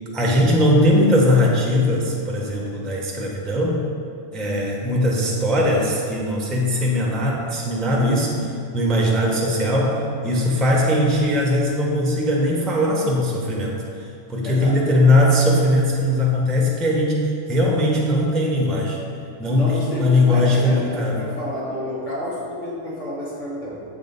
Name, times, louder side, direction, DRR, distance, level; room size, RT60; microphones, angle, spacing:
voice 1, 0.1-3.8 4.3-19.0 19.4-21.2, left 1 dB, ahead, -2 dB, 0.4 m, -20 dB
voice 2, 14.4-14.8 19.4-23.8, left 1 dB, 40° left, -7 dB, 1.2 m, -30 dB
6.8 x 3.7 x 3.8 m, 2.5 s
omnidirectional pair, 1.3 m